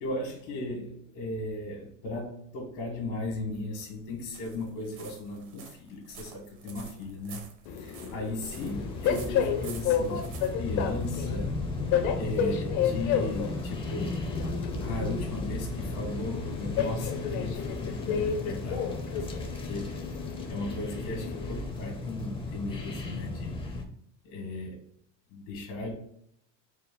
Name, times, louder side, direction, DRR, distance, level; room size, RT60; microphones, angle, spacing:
voice 1, 0.0-7.4 7.8-10.2 10.5-11.5 12.2-14.2 14.8-19.9 20.5-23.5 24.2-24.8 25.3-25.9, left 2 dB, 75° left, -1 dB, 1.5 m, -36 dB
sound 1, 3.2-11.4, right 6 dB, 65° right, 1.0 m, -50 dB
Train, 7.7-21.6, left 7 dB, 55° left, 0.7 m, -32 dB
sound 2, 8.6-23.9, left 3 dB, 15° left, 0.5 m, -35 dB
4.2 x 2.2 x 3.6 m, 0.71 s
supercardioid pair, 135°, 36 cm